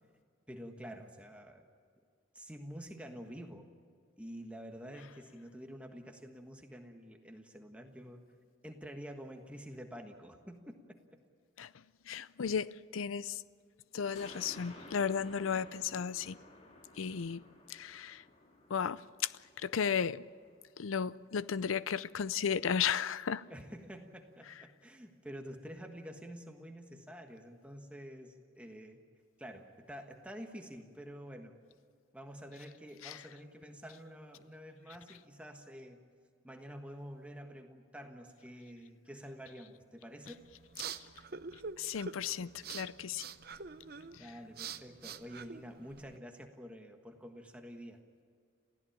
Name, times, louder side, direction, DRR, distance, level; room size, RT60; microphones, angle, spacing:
voice 1, 0.5-1.7 2.3-3.7 4.2-8.2 8.6-11.0 23.5-29.0 29.4-31.5 32.1-36.1 36.4-40.4 44.2-48.0, equal, 5° right, 1.4 m, -48 dB
voice 2, 12.1-13.4 13.9-16.4 17.0-17.4 17.7-18.2 18.7-19.3 19.6-20.2 20.8-23.4 33.0-33.2 41.8-43.2, left 7 dB, 90° left, 0.5 m, -34 dB
sound 1, 14.1-20.8 21.2-21.3, left 2 dB, 35° left, 2.5 m, -55 dB
sound 2, 40.3-46.2, right 5 dB, 50° right, 0.7 m, -46 dB
27.5 x 16.0 x 8.7 m
head